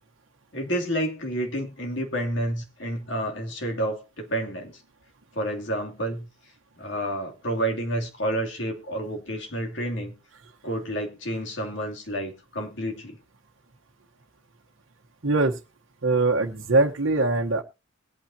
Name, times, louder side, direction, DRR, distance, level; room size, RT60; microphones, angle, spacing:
voice 1, 0.5-4.8 5.3-6.3 6.8-10.1 10.6-13.2, right 1 dB, 60° left, 2 dB, 2.9 m, -29 dB
voice 2, 15.2-15.6 16.0-17.6, right 2 dB, 75° right, -2 dB, 1.1 m, -22 dB
21.5 x 8.8 x 2.8 m, 0.27 s
head